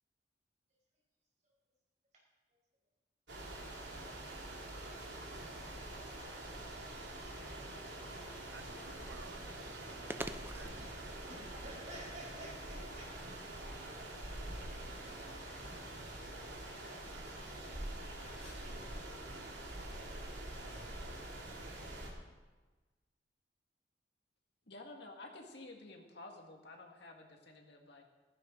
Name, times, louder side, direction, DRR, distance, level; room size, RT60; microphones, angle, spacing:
sound 1, 3.3-22.1, right 1 dB, 70° right, 2.9 m, -45 dB
voice 1, 4.6-5.9 11.3-13.7, right 1 dB, 40° right, -2 dB, 4.9 m, -55 dB
sound 2, 7.9-14.9, right 1 dB, 10° right, 0.5 m, -52 dB
sound 3, 8.2-20.9, left 1 dB, 85° left, 5.4 m, -62 dB
voice 2, 8.5-10.7, right 4 dB, 90° right, 8 dB, 0.7 m, -56 dB
voice 3, 24.7-28.0, left 2 dB, 65° left, 2 dB, 1.9 m, -52 dB
15.5 x 15.0 x 3.9 m, 1.2 s
head